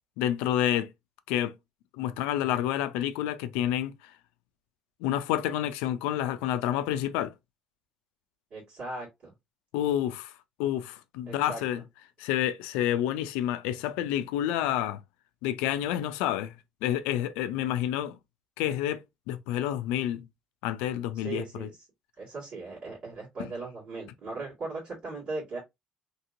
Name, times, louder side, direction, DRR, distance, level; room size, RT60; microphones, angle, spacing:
voice 1, 0.2-0.9 1.3-1.5 1.9-4.0 5.0-7.3 9.7-10.3 10.6-11.8 12.2-15.0 15.4-16.5 16.8-18.2 18.6-19.0 19.3-20.3 20.6-21.7, left 12 dB, 90° left, 0.3 m, -29 dB
voice 2, 8.5-9.3 11.2-11.6 21.1-21.7 22.2-25.6, right 3 dB, 60° right, 1.7 m, -38 dB
2.9 x 2.9 x 2.5 m
supercardioid pair, 70°, 2 cm